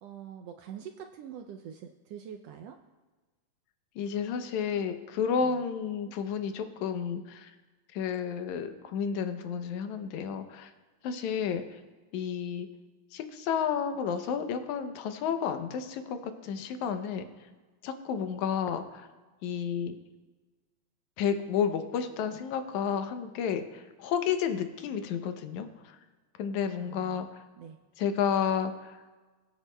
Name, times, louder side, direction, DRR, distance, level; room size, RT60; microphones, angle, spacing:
voice 1, 0.0-2.8 5.4-5.6 26.8-27.2 27.6-27.8, right 8 dB, 80° right, 5 dB, 1.5 m, -44 dB
voice 2, 4.0-7.5 7.9-10.7 11.0-11.8 12.1-12.7 13.1-17.3 17.8-19.1 19.4-20.0 21.2-26.0 26.4-27.4 28.0-29.0, left 7 dB, 85° left, 8 dB, 2.1 m, -31 dB
22.5 x 7.8 x 2.2 m, 1.3 s
omnidirectional pair, 3.3 m